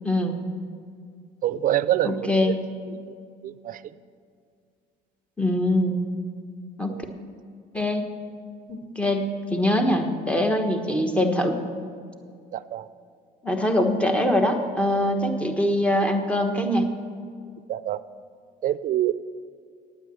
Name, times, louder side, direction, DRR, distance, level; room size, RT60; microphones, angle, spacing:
voice 1, 0.0-0.4 2.0-2.6 5.4-6.0 6.8-7.0 7.7-8.1 8.7-11.6 13.4-16.9, left 1 dB, 5° left, 4 dB, 1.3 m, -23 dB
voice 2, 1.4-2.5 2.9-3.0 3.4-3.8 6.9-7.1 12.5-12.9 17.7-18.0 18.6-19.1, right 12 dB, 55° right, 15 dB, 0.5 m, -26 dB
9.6 x 9.0 x 7.7 m, 2.2 s
cardioid pair, 110°, 17 cm